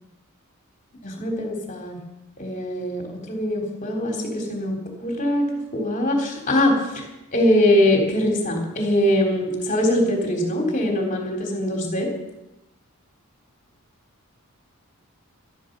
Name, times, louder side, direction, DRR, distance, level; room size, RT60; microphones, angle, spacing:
voice 1, 1.0-2.0 2.4-5.5 5.7-7.0 7.3-12.1, left 1 dB, 35° left, 1 dB, 3.6 m, -22 dB
13.5 x 13.0 x 6.8 m, 0.93 s
head